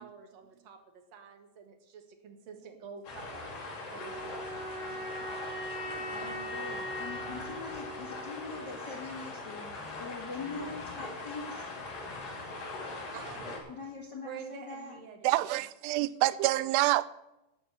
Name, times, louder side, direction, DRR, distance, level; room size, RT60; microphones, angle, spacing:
voice 1, 0.0-5.0 6.2-6.3 14.2-15.5, right 6 dB, 60° right, 1.8 m, -48 dB
sound 1, 3.0-13.6, left 3 dB, 55° left, 4.6 m, -41 dB
sound 2, 4.0-9.0, equal, 5° right, 0.7 m, -41 dB
voice 2, 5.9-11.7 13.7-15.0, left 4 dB, 75° left, 0.9 m, -43 dB
voice 3, 13.1-13.5 15.2-17.1, right 17 dB, 85° right, 2.6 m, -28 dB
13.5 x 6.2 x 8.8 m
omnidirectional pair, 4.8 m